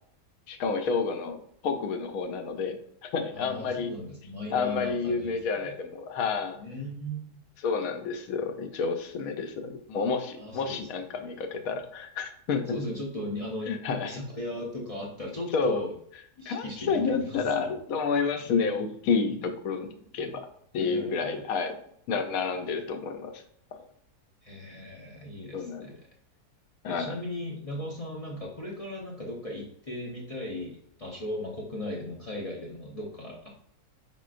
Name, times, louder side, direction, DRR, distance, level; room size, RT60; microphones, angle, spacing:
voice 1, 0.5-3.9 4.5-6.6 7.6-12.6 13.7-14.2 15.5-15.8 16.5-20.5 20.7-21.8 22.1-23.4 23.7-23.8 25.5-25.9 26.8-27.1, left 5 dB, 70° left, 6 dB, 1.0 m, -30 dB
voice 2, 3.3-5.7 6.5-7.3 10.4-10.8 12.7-13.8 14.0-15.9 16.4-17.7 20.8-21.4 24.4-25.9 26.9-33.5, left 1 dB, 45° left, -3 dB, 0.4 m, -37 dB
5.3 x 3.7 x 2.4 m, 0.66 s
omnidirectional pair, 1.6 m